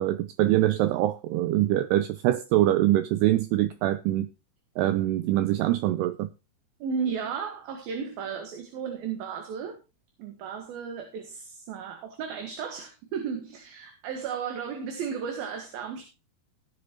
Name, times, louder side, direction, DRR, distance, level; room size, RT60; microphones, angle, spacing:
voice 1, 0.0-4.3 4.8-6.3, right 14 dB, 85° right, 2.3 m, -24 dB
voice 2, 6.8-9.8 10.2-16.0, right 6 dB, 60° right, 3.0 m, -34 dB
17.5 x 8.1 x 2.9 m
omnidirectional pair, 5.4 m